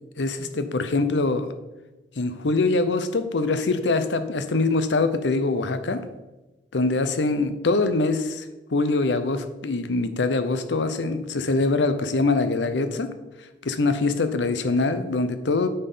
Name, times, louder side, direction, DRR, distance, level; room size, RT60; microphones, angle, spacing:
voice 1, 0.2-1.5 2.2-6.0 6.7-8.4 8.7-13.1 13.6-15.7, left 3 dB, 90° left, 10 dB, 0.7 m, -23 dB
8.6 x 4.4 x 5.5 m, 1.1 s
head